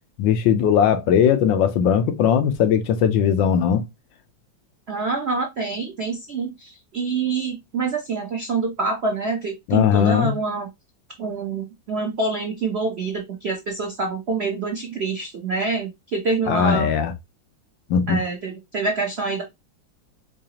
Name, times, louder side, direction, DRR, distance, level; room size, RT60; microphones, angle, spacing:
voice 1, 0.2-3.8 9.7-10.3 16.5-17.1 17.9-18.2, left 8 dB, 75° left, 1.3 m, -19 dB
voice 2, 4.9-10.7 11.2-16.9 18.1-19.4, right 4 dB, 75° right, 0.5 m, -26 dB
4.9 x 2.4 x 2.8 m
omnidirectional pair, 2.2 m